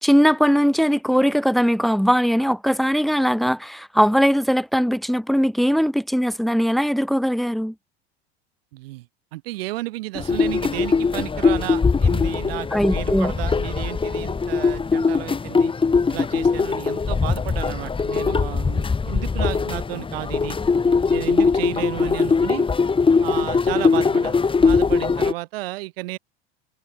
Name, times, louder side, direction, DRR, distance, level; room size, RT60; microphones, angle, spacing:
voice 1, 0.0-7.7 12.7-13.3, equal, ahead, 4.6 m, -20 dB
voice 2, 8.7-9.1 9.3-15.7 16.1-20.6 21.1-22.7 23.2-26.2, right 19 dB, 65° right, 7.6 m, -32 dB
sound 1, 10.1-25.3, left 5 dB, 15° left, 1.9 m, -21 dB
hypercardioid pair, 80°, 31 cm